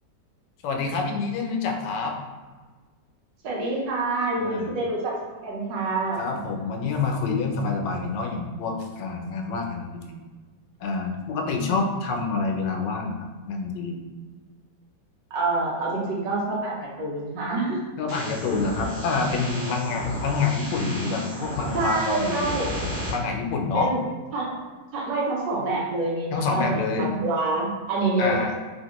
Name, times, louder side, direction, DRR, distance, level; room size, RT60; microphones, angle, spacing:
voice 1, 0.6-2.1 4.4-4.7 6.2-10.1 10.8-14.0 18.0-22.5 23.1-23.9 26.3-27.1 28.2-28.6, left 4 dB, 80° left, 3 dB, 1.2 m, -27 dB
voice 2, 3.4-5.1 5.4-6.3 15.3-17.8 21.7-22.7 23.7-24.0 24.3-24.5 24.9-28.4, right 2 dB, 85° right, -3 dB, 1.5 m, -26 dB
sound 1, 18.1-23.1, equal, 35° right, 1.0 m, -34 dB
3.4 x 2.4 x 2.9 m, 1.4 s
omnidirectional pair, 1.9 m